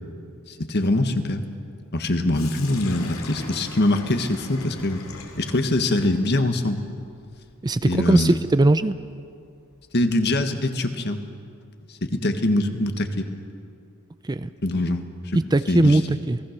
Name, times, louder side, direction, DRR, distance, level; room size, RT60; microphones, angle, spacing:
voice 1, 0.5-1.4 1.9-5.0 5.4-6.8 7.8-8.4 9.9-11.2 12.0-13.3 14.6-15.4 15.7-16.0, left 1 dB, 50° left, 7 dB, 1.6 m, -23 dB
Sink (filling or washing), 2.3-10.3, left 3 dB, 80° left, 2.9 m, -42 dB
voice 2, 7.6-8.9 14.2-14.5 15.3-16.4, right 2 dB, 20° right, 13 dB, 0.4 m, -20 dB
29.0 x 18.5 x 6.7 m, 2.4 s
head